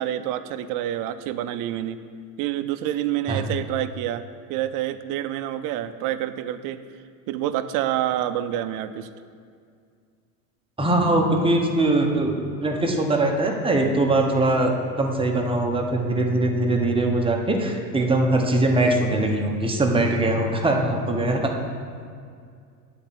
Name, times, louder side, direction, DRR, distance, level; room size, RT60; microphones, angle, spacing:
voice 1, 0.0-2.0 2.4-4.2 4.5-6.8 7.3-9.1, right 12 dB, 45° right, 10 dB, 0.6 m, -27 dB
voice 2, 10.8-21.5, right 2 dB, 10° right, 1 dB, 1.0 m, -22 dB
9.1 x 4.3 x 7.5 m, 2.2 s
supercardioid pair, 105°, 45 cm